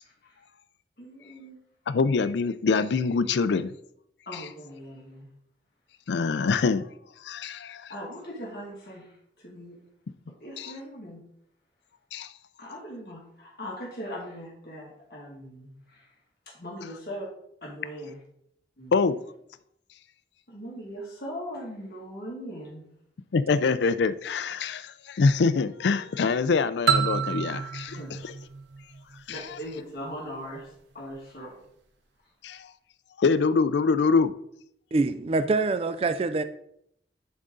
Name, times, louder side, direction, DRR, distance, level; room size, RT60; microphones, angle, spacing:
voice 1, 0.0-0.4 1.0-1.6 4.3-5.3 7.9-9.8 10.4-11.2 12.6-16.2 16.5-17.3 17.6-18.2 18.8-18.9 20.5-22.8 27.9-28.1 29.3-31.5, equal, 60° left, 2.1 m, -40 dB
voice 2, 1.9-3.7 4.3-4.4 6.1-6.9 7.2-7.9 10.6-10.7 12.1-12.3 18.9-19.2 23.3-28.0 28.2-28.3 29.3-29.4 32.4-32.7 33.2-34.3, left 4 dB, 80° left, 0.4 m, -24 dB
sound 1, 26.9-29.6, right 6 dB, 85° right, 0.7 m, -28 dB
voice 3, 34.9-36.4, right 3 dB, 30° right, 0.3 m, -25 dB
10.5 x 3.7 x 3.8 m
head